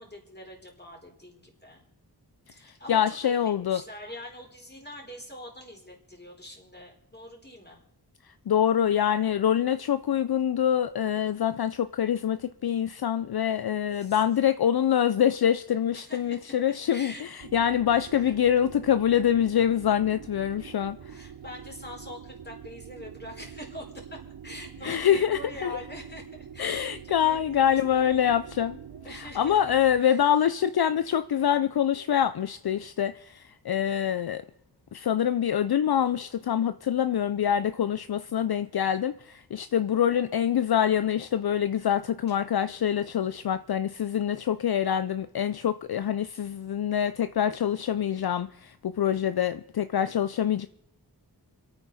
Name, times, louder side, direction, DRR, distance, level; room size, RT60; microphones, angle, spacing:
voice 1, 0.0-1.9 2.5-7.8 13.9-14.2 15.9-16.5 16.9-17.2 18.0-18.4 21.1-27.6 27.9-28.1 28.9-29.6 30.0-30.4 39.9-40.3, left 1 dB, 25° left, 4.4 m, -44 dB
voice 2, 2.7-3.8 8.3-21.2 24.8-25.7 26.6-28.8 29.1-34.4 34.9-50.7, left 9 dB, 65° left, 0.5 m, -25 dB
sound 1, 17.4-30.0, right 8 dB, 70° right, 0.6 m, -45 dB
26.5 x 9.0 x 4.1 m
wide cardioid pair, 45°, 40 cm